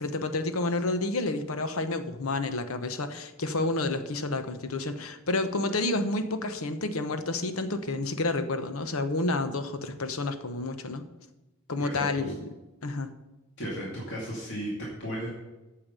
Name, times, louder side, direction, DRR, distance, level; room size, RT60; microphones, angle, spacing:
voice 1, 0.0-11.0 11.7-12.4 12.8-13.1, left 2 dB, 75° left, 9 dB, 1.0 m, -30 dB
voice 2, 11.8-12.3 13.6-15.3, equal, 55° left, -4 dB, 2.4 m, -35 dB
9.0 x 6.7 x 6.7 m, 1.0 s
head